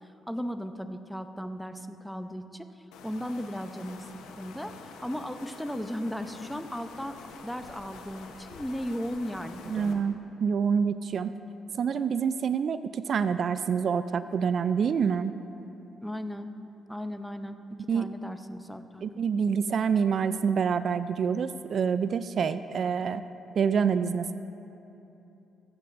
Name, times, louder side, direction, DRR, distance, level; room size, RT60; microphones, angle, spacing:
voice 1, 0.3-4.1 4.4-10.0 16.0-16.5 16.9-19.0, equal, ahead, 8 dB, 0.7 m, -36 dB
sound 1, 2.9-9.9, left 5 dB, 85° left, 0.9 m, -47 dB
voice 2, 9.7-11.4 11.7-15.3 17.9-18.1 19.0-23.2 23.6-24.3, right 6 dB, 60° right, 12 dB, 0.3 m, -27 dB
23.5 x 8.3 x 2.6 m, 3.0 s
supercardioid pair, 60°, 0 cm